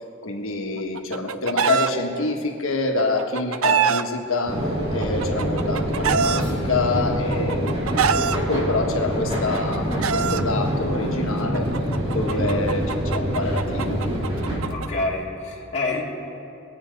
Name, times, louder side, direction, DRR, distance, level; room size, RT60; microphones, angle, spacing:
voice 1, 0.2-7.9 8.3-11.7 12.1-14.0 14.5-14.6, left 3 dB, 70° left, 2 dB, 1.4 m, -26 dB
Chicken rooster, 0.8-1.9 3.0-4.0 5.0-6.4 7.3-8.4 9.4-10.4 11.5-14.9, right 7 dB, 75° right, 0.5 m, -24 dB
sound 1, 4.5-14.6, equal, 30° right, 2.9 m, -25 dB
voice 2, 12.3-12.6 14.4-16.0, left 3 dB, 30° left, -5 dB, 2.3 m, -29 dB
21.5 x 8.9 x 5.2 m, 2.6 s
head